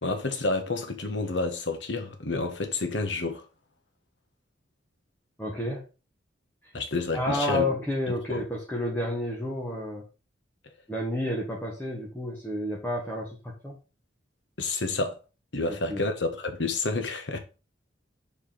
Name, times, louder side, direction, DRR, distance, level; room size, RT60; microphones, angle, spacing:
voice 1, 0.0-3.4 6.7-7.7 8.3-8.4 14.6-15.2 15.5-17.4, left 3 dB, 65° left, 1.4 m, -29 dB
voice 2, 5.4-5.8 7.1-10.0 10.9-13.3 13.6-13.8 15.7-16.1, left 1 dB, 10° left, 1.7 m, -30 dB
5.0 x 4.8 x 5.9 m
head